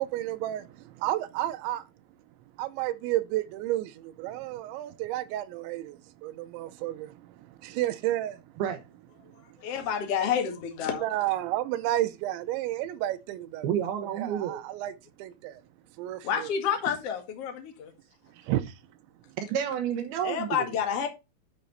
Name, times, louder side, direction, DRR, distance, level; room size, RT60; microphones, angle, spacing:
voice 1, 0.0-1.8 2.6-7.3 7.6-8.4 10.9-13.7 14.1-14.9 15.2-15.6 16.0-16.5 18.5-18.7, right 14 dB, 90° right, 3.0 m, -31 dB
voice 2, 9.6-11.0 16.2-17.9 20.2-21.1, left 8 dB, 50° left, 1.9 m, -29 dB
voice 3, 13.6-14.6 19.4-20.8, right 9 dB, 70° right, 2.6 m, -30 dB
10.5 x 5.7 x 4.0 m
omnidirectional pair, 5.3 m